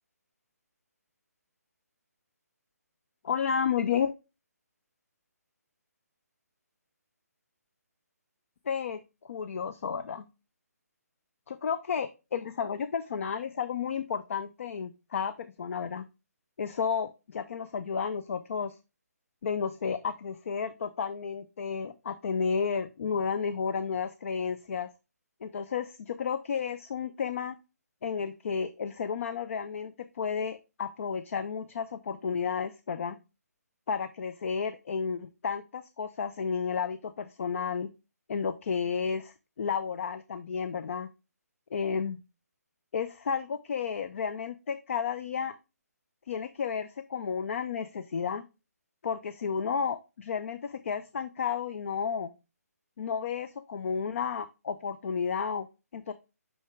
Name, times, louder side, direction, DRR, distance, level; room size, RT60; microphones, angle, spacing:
voice 1, 3.2-4.1 8.7-10.3 11.5-16.0 16.6-18.8 19.4-24.9 25.4-27.6 28.0-33.2 33.9-37.9 38.3-41.1 41.7-42.2 42.9-45.6 46.3-48.4 49.0-52.3 53.0-55.7 55.9-56.1, left 6 dB, 55° left, 12 dB, 0.5 m, -32 dB
5.8 x 5.4 x 3.2 m, 0.28 s
hypercardioid pair, 155°, 9 cm